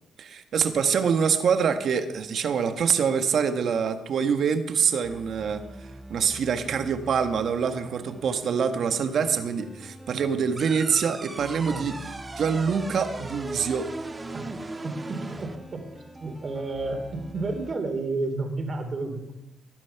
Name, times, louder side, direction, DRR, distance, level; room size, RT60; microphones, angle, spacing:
voice 1, 0.2-5.6 6.1-11.9 12.4-13.9, right 6 dB, 60° right, 8 dB, 1.4 m, -25 dB
sound 1, 5.0-17.7, right 1 dB, 10° right, 2.0 m, -45 dB
sound 2, 10.6-15.6, right 2 dB, 25° right, 1.4 m, -38 dB
voice 2, 14.8-15.8 16.2-19.3, right 3 dB, 40° right, 5 dB, 3.4 m, -31 dB
19.0 x 9.5 x 5.8 m, 0.92 s
cardioid pair, 90°, 0 cm